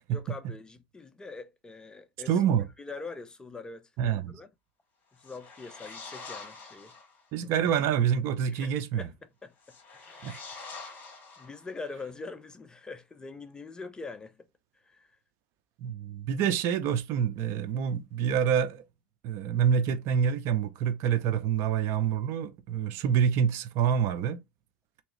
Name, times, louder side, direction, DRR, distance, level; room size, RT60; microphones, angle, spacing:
voice 1, 0.1-2.3 2.8-4.5 5.2-6.9 7.4-7.5 8.5-8.7 9.0-9.1 9.4-10.4 11.4-14.5 14.8-15.1, left 3 dB, 15° left, 0.5 m, -43 dB
voice 2, 2.3-2.7 4.0-4.3 7.3-9.1 10.2-10.3 15.8-18.8 19.2-24.4, right 8 dB, 55° right, 0.7 m, -27 dB
sound 1, 5.1-7.2 9.6-11.9, left 4 dB, 35° left, 2.0 m, -45 dB
3.5 x 3.0 x 3.1 m
supercardioid pair, 115°, 6 cm